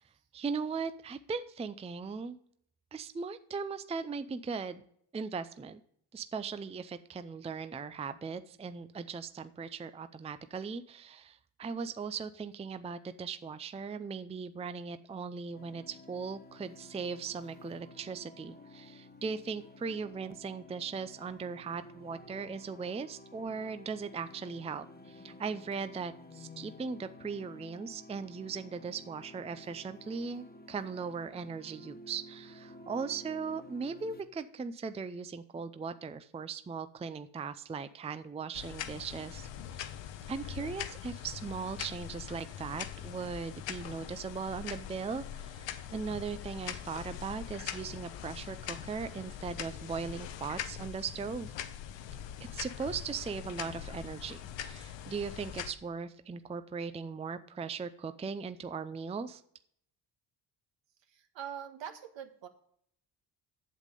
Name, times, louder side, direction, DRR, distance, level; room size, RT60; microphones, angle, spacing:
voice 1, 0.3-2.4 2.9-4.8 5.1-5.8 6.1-39.8 40.3-51.5 52.5-59.4, right 5 dB, 15° right, 11 dB, 0.5 m, -39 dB
sound 1, 15.5-34.2, left 1 dB, 20° left, 1.4 m, -52 dB
sound 2, 38.5-55.7, left 10 dB, 65° left, 0.9 m, -42 dB
voice 2, 61.1-62.5, right 9 dB, 70° right, 6 dB, 1.5 m, -43 dB
8.3 x 7.4 x 5.2 m, 0.67 s
cardioid pair, 80°, 47 cm